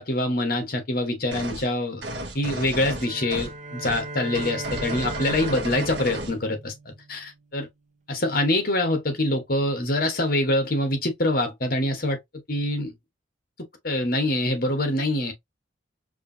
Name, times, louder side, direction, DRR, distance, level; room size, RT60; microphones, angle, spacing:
voice 1, 0.0-2.0 2.3-7.7 8.1-12.2 12.5-12.9 13.8-15.3, left 1 dB, 50° left, 1.3 m, -25 dB
sound 1, 1.3-1.7 2.0-3.6 3.8-4.0 4.3-6.4, right 1 dB, 60° right, 1.2 m, -33 dB
sound 2, 2.9-7.4, right 3 dB, 40° right, 1.0 m, -37 dB
4.8 x 2.7 x 2.8 m
head